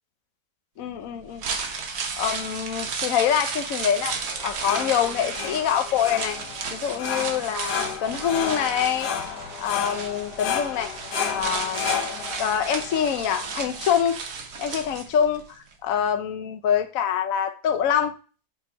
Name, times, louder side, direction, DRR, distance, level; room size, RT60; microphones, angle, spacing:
voice 1, 0.8-1.4 2.2-4.1 4.4-6.4 6.7-9.1 9.6-10.9 11.3-11.9 12.4-14.2 14.6-15.4 15.8-18.1, left 9 dB, 60° left, 7 dB, 1.1 m, -25 dB
sound 1, 1.2-15.4 15.7-15.8, right 5 dB, 65° right, 1.5 m, -33 dB
sound 2, 4.3-14.0, left 7 dB, 75° left, 1.5 m, -32 dB
5.7 x 4.5 x 5.6 m, 0.36 s
omnidirectional pair, 1.7 m